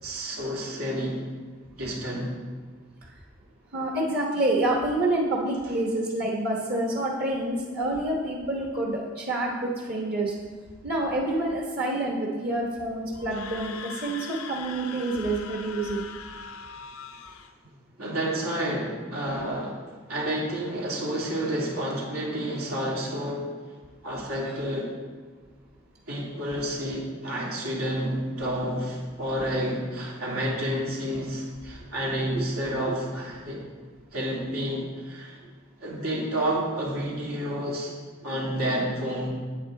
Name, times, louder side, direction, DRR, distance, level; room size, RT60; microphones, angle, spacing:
voice 1, 0.0-1.2 1.8-2.3 18.0-19.8 20.1-23.4 24.0-24.9 26.1-33.6 34.1-35.4 35.8-37.9 38.2-39.3, equal, 85° right, -4 dB, 2.6 m, -30 dB
voice 2, 3.7-10.3 10.8-16.0 32.3-32.4, right 2 dB, 45° right, -2 dB, 1.1 m, -27 dB
Screaming, 13.2-17.5, left 6 dB, 80° left, 0.6 m, -41 dB
8.7 x 8.5 x 3.8 m, 1.5 s
head